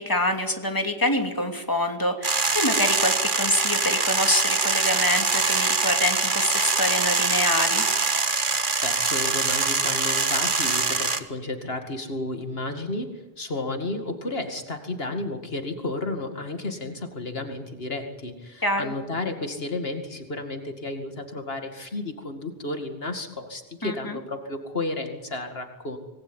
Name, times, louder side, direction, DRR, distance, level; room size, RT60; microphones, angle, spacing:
voice 1, 0.0-7.8 18.6-18.9 23.8-24.2, left 1 dB, 20° left, 4 dB, 2.9 m, -26 dB
sound 1, 2.2-11.2, right 4 dB, 55° right, 1.7 m, -23 dB
voice 2, 8.8-13.1 13.4-26.0, left 2 dB, 70° left, 5 dB, 2.5 m, -32 dB
26.5 x 20.0 x 9.2 m, 1.1 s
omnidirectional pair, 1.1 m